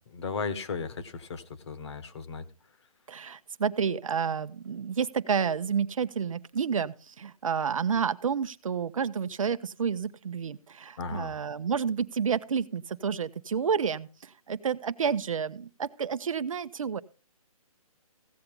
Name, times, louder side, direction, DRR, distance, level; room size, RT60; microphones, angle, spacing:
voice 1, 0.0-2.4 11.0-11.3, left 4 dB, 45° left, 11 dB, 1.5 m, -35 dB
voice 2, 3.1-17.0, right 6 dB, 60° right, 12 dB, 0.7 m, -30 dB
16.0 x 6.8 x 5.3 m, 0.35 s
hypercardioid pair, 155°, 19 cm